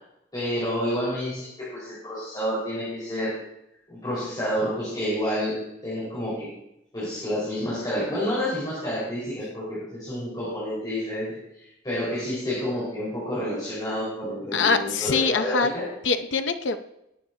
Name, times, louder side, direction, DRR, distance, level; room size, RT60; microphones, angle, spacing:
voice 1, 0.3-3.4 3.9-6.5 6.9-15.9, equal, 20° left, -9 dB, 4.7 m, -29 dB
voice 2, 14.5-15.7 16.0-16.8, left 4 dB, 85° left, 8 dB, 0.7 m, -23 dB
18.0 x 8.6 x 2.8 m, 0.83 s
head